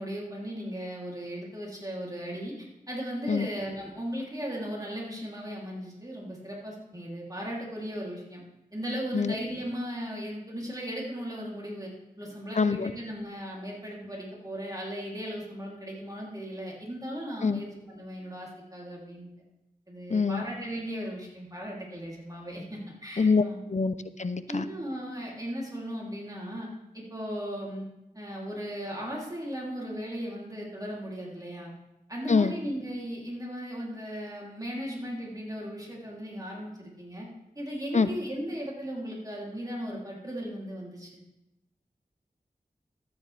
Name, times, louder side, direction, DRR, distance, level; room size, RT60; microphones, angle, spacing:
voice 1, 0.0-8.4 8.7-11.9 12.2-19.3 19.9-23.6 24.5-26.7 26.9-27.8 28.1-31.7 32.1-37.3 37.5-41.1, equal, 25° right, -4 dB, 3.0 m, -37 dB
voice 2, 12.6-12.9 17.4-17.6 20.1-20.4 23.2-23.4 23.7-24.6 32.3-32.5 37.9-38.1, left 4 dB, 50° left, 12 dB, 0.5 m, -24 dB
13.0 x 9.1 x 3.3 m, 0.93 s
wide cardioid pair, 45°, 15 cm